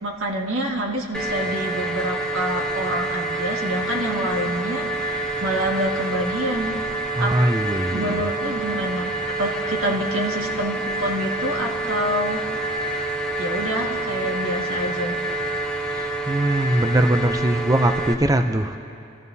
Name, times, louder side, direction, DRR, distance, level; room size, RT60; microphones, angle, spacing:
voice 1, 0.0-6.7 7.2-7.4 7.9-9.1 9.4-12.4 13.4-15.2, right 1 dB, 85° right, 0 dB, 1.8 m, -27 dB
sound 1, 1.1-18.1, right 2 dB, 5° left, 0.9 m, -27 dB
voice 2, 7.2-8.3 15.8-18.8, right 1 dB, 15° right, 6 dB, 0.5 m, -21 dB
29.5 x 14.5 x 2.8 m, 2.7 s
head